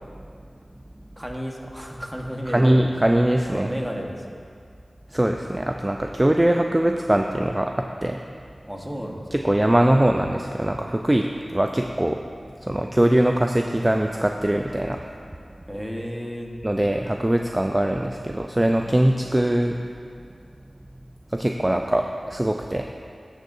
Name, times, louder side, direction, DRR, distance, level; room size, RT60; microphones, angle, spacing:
voice 1, 1.2-2.9 3.5-4.2 8.7-9.2 15.7-16.5, equal, 5° right, 0 dB, 1.3 m, -32 dB
voice 2, 2.5-3.7 5.1-8.2 9.3-12.2 12.6-15.0 16.6-19.8 21.3-22.9, right 1 dB, 20° right, 3 dB, 0.4 m, -22 dB
16.0 x 6.5 x 2.6 m, 2.4 s
wide cardioid pair, 55°, 0 cm